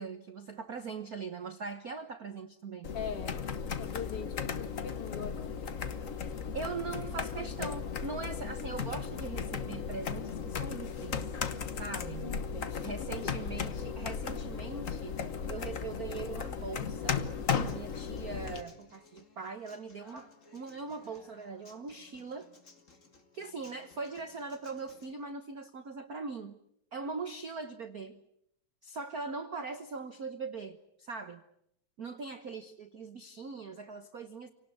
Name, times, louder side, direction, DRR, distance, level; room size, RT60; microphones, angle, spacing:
voice 1, 0.0-2.9 6.5-11.3 11.8-12.4 12.8-15.2 15.5-17.2 17.6-22.5 23.3-26.6 26.9-28.2 28.8-31.4 32.0-34.5, right 4 dB, 80° right, 9 dB, 0.8 m, -41 dB
sound 1, 2.8-18.6, left 6 dB, 85° left, 0.7 m, -36 dB
voice 2, 2.9-5.4 12.2-12.9 13.2-13.4, left 7 dB, 55° left, 9 dB, 2.5 m, -41 dB
Human voice / Acoustic guitar, 17.1-25.1, left 3 dB, 25° left, 2.4 m, -60 dB
28.5 x 18.5 x 9.5 m, 0.75 s
omnidirectional pair, 3.4 m